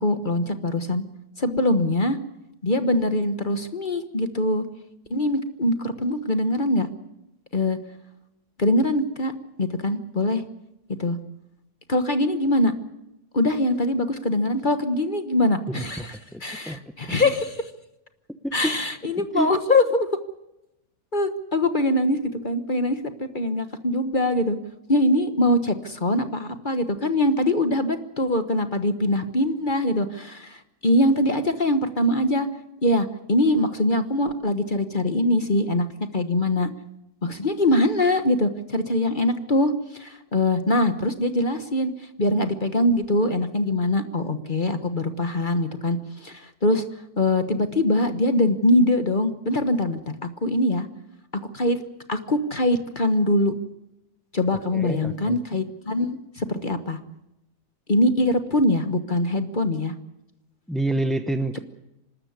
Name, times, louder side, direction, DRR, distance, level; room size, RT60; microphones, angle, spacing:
voice 1, 0.0-1.0 1.4-2.2 2.6-4.6 5.1-6.9 7.5-7.8 8.6-9.3 9.6-10.4 11.0-11.2 11.9-12.7 13.3-17.6 18.5-20.1 21.1-22.2 22.4-24.6 24.9-32.5 32.8-35.9 36.1-36.7 37.2-46.8 47.2-50.9 51.5-51.8 52.1-53.5 54.3-57.0 57.9-59.9, left 1 dB, 30° left, 9 dB, 1.3 m, -23 dB
voice 2, 15.7-16.8 17.2-17.3 18.4-18.8 19.2-19.5 54.7-55.4 60.7-61.6, right 1 dB, ahead, 8 dB, 0.5 m, -28 dB
25.5 x 13.5 x 9.6 m, 0.89 s
omnidirectional pair, 1.8 m